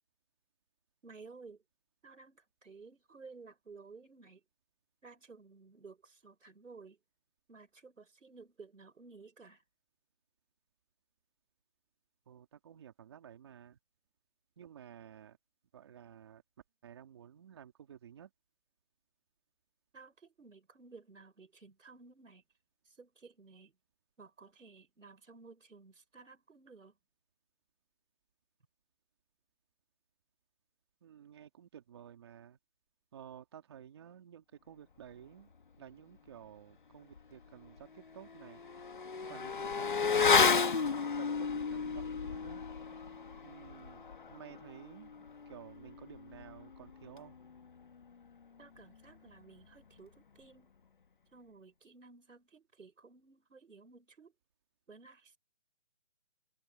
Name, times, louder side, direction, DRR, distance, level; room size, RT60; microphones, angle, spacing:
voice 1, 1.0-1.6 2.0-4.4 5.0-7.0 7.5-9.6 19.9-22.4 22.9-23.7 24.2-27.0 48.6-50.7 51.3-54.3 54.9-55.4, right 4 dB, 80° right, 5.3 m, -55 dB
voice 2, 12.3-13.8 14.6-15.4 15.7-16.4 16.8-18.3 31.0-32.6 33.1-35.5 35.8-38.6 39.3-42.6 43.4-47.4, right 9 dB, 20° right, 2.6 m, -53 dB
Motorcycle / Accelerating revving vroom, 37.2-37.3 37.6-47.7 47.9-48.0, left 5 dB, 40° left, 1.4 m, -33 dB
hypercardioid pair, 175°, 38 cm